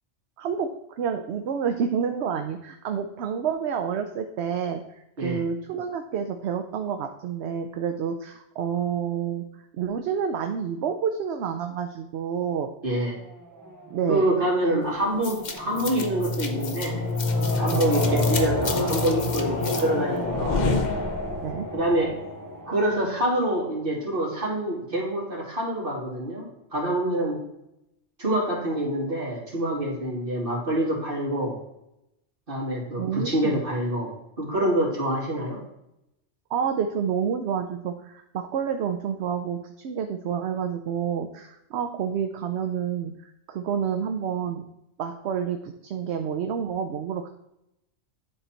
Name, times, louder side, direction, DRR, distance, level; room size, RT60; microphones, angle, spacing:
voice 1, 0.4-9.4 9.7-12.7 13.9-14.3 14.7-14.8 17.7-17.9 21.4-21.7 33.0-33.6 36.5-44.7 45.0-47.3, right 7 dB, 70° right, 6 dB, 0.9 m, -29 dB
voice 2, 12.8-13.2 14.1-17.0 17.6-20.6 21.7-22.1 22.7-26.4 26.7-27.4 28.2-31.6 32.5-35.6, right 1 dB, 50° right, -5 dB, 3.0 m, -26 dB
sound 1, 13.1-24.0, right 1 dB, 20° right, 0.7 m, -33 dB
sound 2, 15.2-21.6, left 4 dB, 45° left, 0.8 m, -27 dB
9.9 x 4.0 x 4.4 m, 0.83 s
omnidirectional pair, 1.2 m